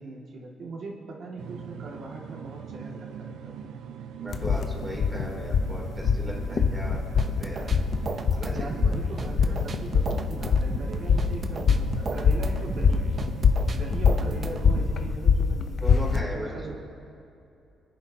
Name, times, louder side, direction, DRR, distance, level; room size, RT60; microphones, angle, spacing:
voice 1, 0.0-3.7 8.5-13.1 13.7-16.7, right 3 dB, 60° right, -2 dB, 2.3 m, -40 dB
sound 1, 1.4-15.1, right 7 dB, 80° right, 0.7 m, -41 dB
voice 2, 4.2-7.0 7.4-7.7 8.3-8.8 15.8-16.7, equal, 20° right, -3 dB, 3.4 m, -37 dB
sound 2, 4.3-16.2, left 6 dB, 60° left, 0.8 m, -24 dB
sound 3, 6.9-14.9, right 4 dB, 45° right, 0.8 m, -36 dB
26.0 x 10.5 x 2.9 m, 2.7 s
cardioid pair, 90°, 0 cm